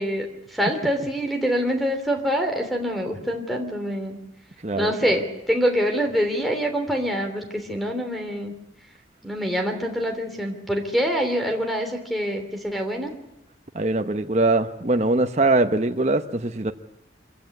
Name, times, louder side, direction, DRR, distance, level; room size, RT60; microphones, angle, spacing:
voice 1, 0.0-4.2 4.8-8.5 9.2-13.1, equal, ahead, 3.1 m, -25 dB
voice 2, 13.7-16.7, right 2 dB, 35° right, 1.0 m, -22 dB
25.5 x 15.5 x 9.6 m
head